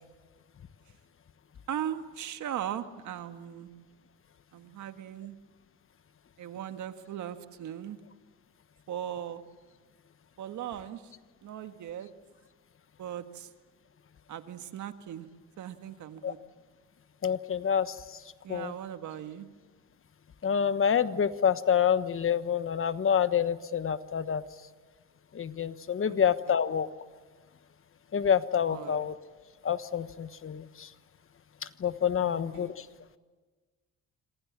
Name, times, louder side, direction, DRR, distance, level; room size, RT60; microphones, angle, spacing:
voice 1, 1.7-3.7 4.5-5.4 6.4-8.0 8.9-9.4 10.4-11.1 11.4-12.1 13.0-13.5 14.3-15.3 15.6-16.4 18.4-19.5 26.1-26.2 26.5-26.6 28.7-29.1 32.2-32.8, right 10 dB, 75° right, 8 dB, 1.7 m, -38 dB
voice 2, 17.2-18.2 18.5-18.7 20.4-24.4 25.3-26.9 28.1-29.1 29.6-30.9 31.8-32.9, left 8 dB, 45° left, 12 dB, 1.3 m, -27 dB
27.0 x 26.5 x 7.4 m, 1.3 s
cardioid pair, 90°, 30 cm